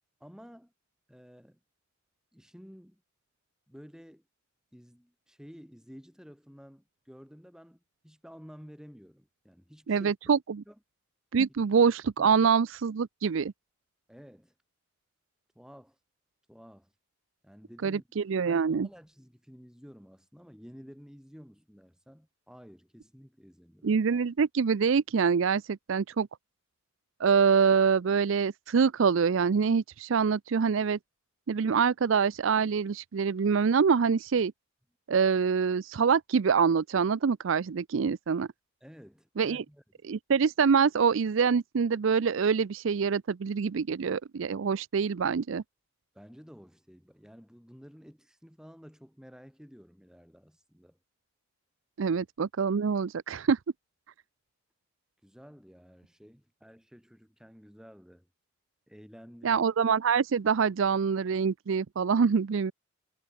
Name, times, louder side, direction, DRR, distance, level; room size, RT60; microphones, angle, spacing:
voice 1, 0.2-0.7 1.1-1.6 2.3-3.0 3.7-4.2 4.7-10.1 10.7-10.8 12.2-12.5 14.1-14.5 15.5-16.0 16.5-16.9 17.4-18.0 18.4-23.9 38.8-39.8 46.1-51.0 55.2-58.3 58.9-59.7, equal, 5° right, 6.2 m, -52 dB
voice 2, 9.9-10.4 11.3-13.5 17.8-18.9 23.8-26.3 27.2-31.0 31.5-34.5 35.1-38.5 39.4-39.6 40.1-45.6 52.0-53.6 59.4-62.7, right 6 dB, 70° right, 0.5 m, -25 dB
head